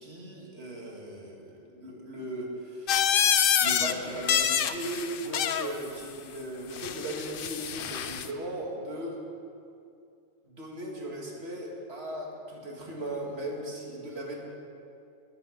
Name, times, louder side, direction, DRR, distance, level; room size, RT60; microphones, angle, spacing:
voice 1, 0.0-3.3 3.6-9.2 10.4-14.4, right 1 dB, 50° right, -1 dB, 2.2 m, -37 dB
sound 1, 2.9-3.9 4.2-5.7 6.7-8.3, left 8 dB, 60° left, 0.6 m, -26 dB
13.0 x 10.5 x 5.1 m, 2.5 s
omnidirectional pair, 1.4 m